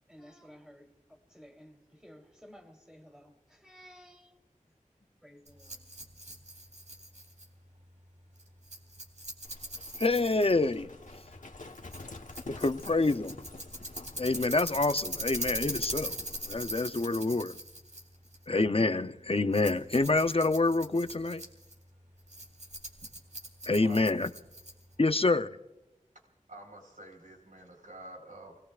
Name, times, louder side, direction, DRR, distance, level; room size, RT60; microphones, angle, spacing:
voice 1, 0.1-4.4 5.0-5.8, equal, 5° right, 3.4 m, -55 dB
Rattle, 5.5-25.0, right 1 dB, 60° right, 3.7 m, -42 dB
Livestock farm animals working animals, 9.4-16.8, left 3 dB, 70° left, 1.2 m, -48 dB
voice 2, 10.0-11.2 12.5-13.4 14.2-16.1 16.5-17.6 18.5-21.4 23.7-24.3 25.0-25.6, left 3 dB, 45° left, 0.7 m, -27 dB
voice 3, 26.5-28.6, right 1 dB, 75° right, 4.2 m, -48 dB
30.0 x 19.5 x 2.5 m
wide cardioid pair, 50°, 14 cm